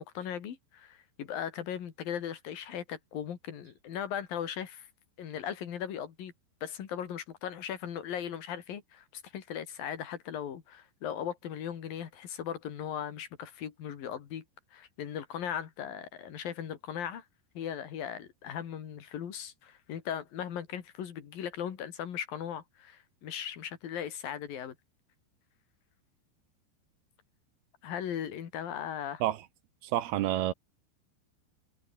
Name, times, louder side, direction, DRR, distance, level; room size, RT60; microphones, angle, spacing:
voice 1, 0.0-4.9 5.2-6.3 6.6-14.4 14.7-17.2 17.6-24.8 27.8-29.2, left 9 dB, 50° left, 3.7 m, -38 dB
voice 2, 29.8-30.5, right 13 dB, 70° right, 2.5 m, -29 dB
omnidirectional pair, 5.7 m